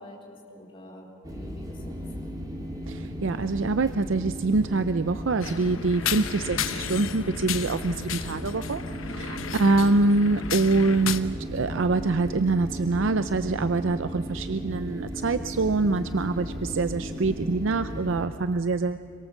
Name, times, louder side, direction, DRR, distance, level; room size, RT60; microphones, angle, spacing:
voice 1, 0.0-2.0 8.8-9.3, left 1 dB, 25° left, -2 dB, 4.0 m, -46 dB
sound 1, 1.2-18.3, equal, 20° right, 2.1 m, -36 dB
voice 2, 2.9-8.8 9.2-19.0, right 3 dB, 65° right, 11 dB, 0.5 m, -25 dB
sound 2, 5.4-11.2, left 8 dB, 80° left, 1.0 m, -34 dB
26.0 x 23.0 x 7.3 m, 2.4 s
head